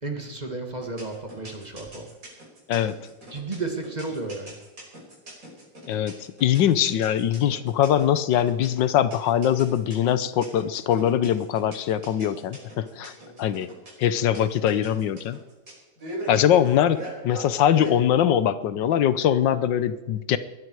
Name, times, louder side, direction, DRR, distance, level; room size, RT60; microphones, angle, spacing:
voice 1, 0.0-2.1 3.3-4.6 13.2-13.4, right 3 dB, 25° right, 3 dB, 2.1 m, -33 dB
sound 1, 0.8-17.9, right 1 dB, 45° right, 6.2 m, -40 dB
voice 2, 5.9-13.1 13.4-13.7 14.0-15.4 16.3-17.0 17.2-20.4, left 10 dB, 85° left, 14 dB, 1.5 m, -22 dB
21.5 x 12.5 x 4.8 m, 1.1 s
omnidirectional pair, 1.9 m